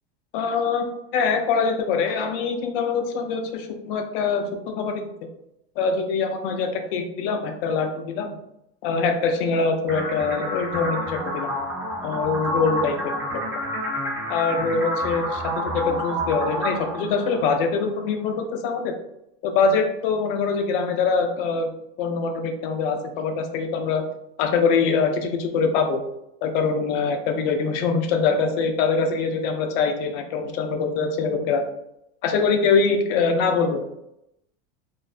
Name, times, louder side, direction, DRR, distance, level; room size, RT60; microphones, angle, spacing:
voice 1, 0.3-0.9 1.1-5.3 5.8-8.4 8.8-11.5 12.0-13.0 14.3-18.9 19.4-24.0 24.4-26.0 26.4-31.6 32.2-34.0, left 5 dB, 60° left, 5 dB, 0.5 m, -23 dB
sound 1, 9.9-17.9, equal, 5° right, 0.8 m, -29 dB
2.5 x 2.1 x 2.4 m, 0.81 s
supercardioid pair, 120°, 33 cm